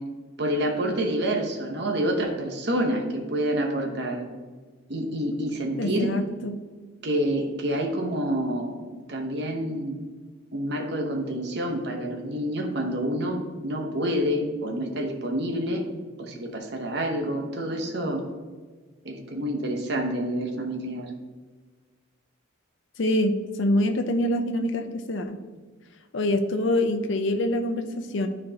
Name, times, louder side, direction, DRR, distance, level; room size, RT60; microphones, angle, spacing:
voice 1, 0.4-4.3 4.9-6.1 7.0-10.0 10.5-13.4 13.6-15.8 16.2-18.2 19.0-21.1, equal, 55° right, 3 dB, 0.9 m, -28 dB
voice 2, 5.8-6.6 23.0-25.4 26.1-28.3, left 1 dB, 70° left, 8 dB, 0.6 m, -25 dB
10.0 x 4.4 x 2.9 m, 1.4 s
head